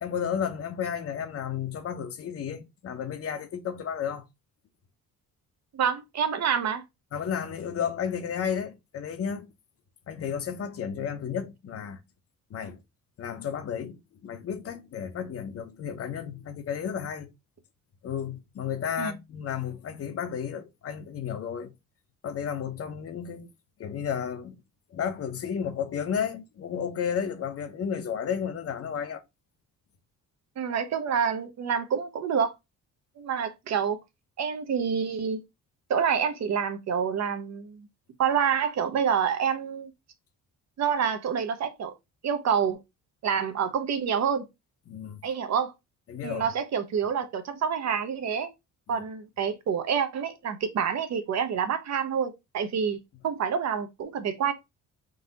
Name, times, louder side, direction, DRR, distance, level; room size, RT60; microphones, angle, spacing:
voice 1, 0.0-4.3 7.1-9.5 10.1-12.0 12.5-12.8 13.2-17.3 18.0-21.7 22.2-23.5 23.8-24.6 24.9-29.2 44.9-45.2 46.1-46.5 48.9-49.0, left 8 dB, 45° left, 0.8 m, -32 dB
voice 2, 5.7-6.8 19.0-19.2 30.6-32.5 33.2-34.0 34.4-35.4 35.9-37.9 38.2-39.9 40.8-41.9 42.2-42.8 43.2-44.5 45.2-45.7 46.2-48.5 48.9-53.0 53.2-54.5, right 7 dB, 50° right, 0.8 m, -27 dB
3.9 x 2.8 x 4.0 m
cardioid pair, 150°, 34 cm